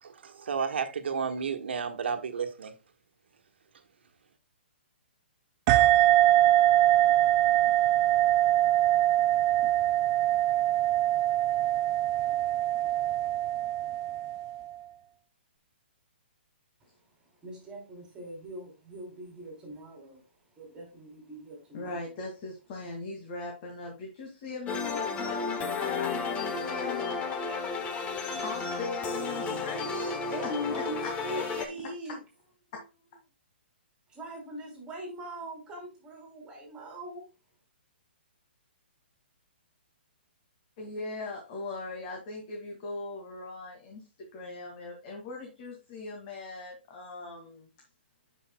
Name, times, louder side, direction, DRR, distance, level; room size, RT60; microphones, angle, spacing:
voice 1, 0.0-2.7, right 6 dB, 70° right, 1.4 m, -32 dB
sound 1, 5.7-14.7, right 13 dB, 30° right, 0.5 m, -23 dB
voice 2, 17.4-20.2 20.6-22.0 27.4-28.8 30.3-32.2 34.1-37.2, right 1 dB, 15° right, 3.3 m, -41 dB
voice 3, 21.7-27.2 28.4-30.3 31.3-32.0 32.7-33.2 40.8-44.0 44.3-47.7, left 3 dB, 40° left, 2.1 m, -39 dB
sound 2, 24.7-31.7, left 4 dB, 20° left, 1.1 m, -33 dB
12.5 x 5.5 x 2.2 m
hypercardioid pair, 150°, 6 cm